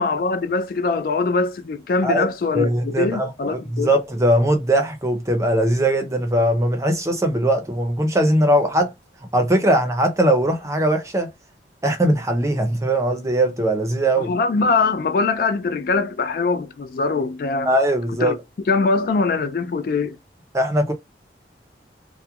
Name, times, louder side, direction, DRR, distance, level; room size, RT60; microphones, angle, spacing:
voice 1, 0.0-3.9 14.2-17.7 18.2-18.4 18.7-20.2, left 4 dB, 50° left, 0.3 m, -22 dB
voice 2, 2.5-8.9 9.3-11.3 11.8-14.3 17.7-18.3 20.5-20.9, right 1 dB, 15° right, 0.5 m, -20 dB
2.3 x 2.1 x 2.7 m
head